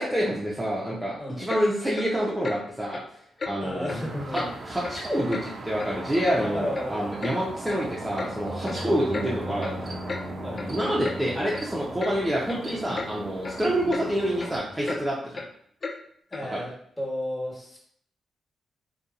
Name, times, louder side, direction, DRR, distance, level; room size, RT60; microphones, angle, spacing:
voice 1, 0.0-3.0 3.5-3.9 4.3-10.0 10.7-15.4 16.5-16.6, equal, 15° right, -5 dB, 0.6 m, -27 dB
Clock, 1.5-1.6 1.9-2.1 2.4-2.6 2.9-3.1 3.4-3.5 3.9-4.0 4.3-4.5 4.8-5.0 5.3-5.4 5.8-6.4 6.7-6.8 7.2-7.4 7.7-7.8 8.2-8.3 8.7-8.8 9.1-9.3 9.6-9.8 10.1-10.2 10.6-10.7 11.0-11.2 11.5-11.6 12.0-12.1 12.5-12.6 12.9-13.1 13.4-13.6 13.9-14.1 14.4-14.5 14.8-15.0 15.3-15.5 15.8-16.0 16.3-16.5, left 3 dB, 45° left, 0.4 m, -34 dB
voice 2, 3.6-4.5 6.4-7.1 7.8-8.1 8.7-8.9 10.4-10.8 16.3-17.8, left 1 dB, 10° left, -5 dB, 1.3 m, -34 dB
sound 1, 3.9-14.6, right 3 dB, 55° right, 0.4 m, -38 dB
sound 2, 8.4-15.1, left 1 dB, 85° left, 0.7 m, -41 dB
2.7 x 2.2 x 2.5 m, 0.65 s
supercardioid pair, 45°, 0 cm